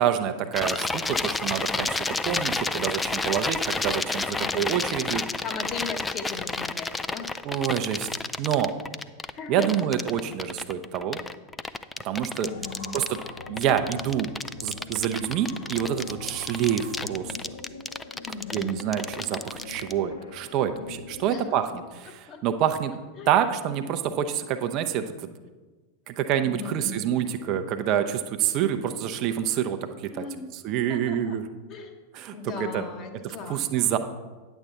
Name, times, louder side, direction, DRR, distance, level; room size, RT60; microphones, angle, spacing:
voice 1, 0.0-2.0 2.2-5.2 7.4-8.1 8.4-8.7 9.5-11.2 12.0-12.5 12.9-13.2 13.5-14.3 14.6-17.3 18.5-22.9 23.3-25.0 26.1-30.2 30.5-31.4 32.1-32.8 33.2-34.0, right 10 dB, 40° right, 8 dB, 0.5 m, -27 dB
sound 1, 0.5-19.9, left 3 dB, 10° left, 0.3 m, -30 dB
voice 2, 4.2-4.8 5.1-7.3 9.2-9.9 12.4-13.0 18.3-18.8 21.3-21.5 22.0-22.4 23.2-23.4 26.4-27.0 30.1-30.5 30.9-31.4 31.7-32.0 32.3-33.9, left 5 dB, 35° left, 4 dB, 1.1 m, -38 dB
sound 2, 12.4-21.9, left 4 dB, 65° left, 1.0 m, -43 dB
9.7 x 8.0 x 3.6 m, 1.3 s
figure-of-eight pair, 90°, 0 cm